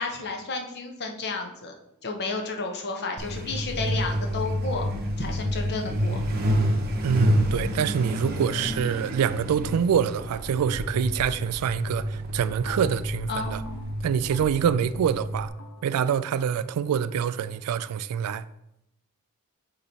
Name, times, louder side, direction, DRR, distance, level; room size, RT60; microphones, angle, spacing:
voice 1, 0.0-1.7 2.0-4.9 5.2-6.2 13.3-13.6, left 3 dB, 50° left, 0.9 m, -32 dB
Truck, 3.2-15.5, equal, 45° right, 0.8 m, -29 dB
voice 2, 7.0-13.6 14.0-15.5 15.8-18.4, right 8 dB, 75° right, 0.3 m, -25 dB
sound 1, 10.1-10.6 10.9-11.4 11.7-17.6, left 1 dB, 70° left, 1.4 m, -48 dB
8.6 x 3.1 x 4.1 m
head